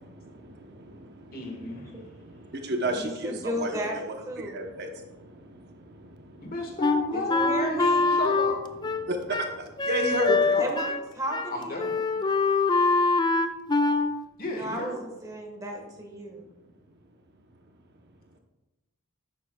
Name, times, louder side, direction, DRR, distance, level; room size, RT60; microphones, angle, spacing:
voice 1, 0.0-6.6 8.9-10.6, equal, 50° right, 4 dB, 0.9 m, -33 dB
voice 2, 1.3-1.9 6.4-8.6 10.3-10.7 11.5-12.2 14.4-15.0, left 2 dB, 45° left, 2 dB, 1.5 m, -34 dB
voice 3, 2.9-4.6 7.1-8.1 10.6-11.9 14.5-16.5, equal, 15° right, 1 dB, 1.4 m, -34 dB
Wind instrument woodwind instrument, 6.8-11.1 11.3-11.5 11.8-14.1, left 3 dB, 20° left, 0.3 m, -24 dB
11.5 x 8.4 x 2.3 m, 1.0 s
head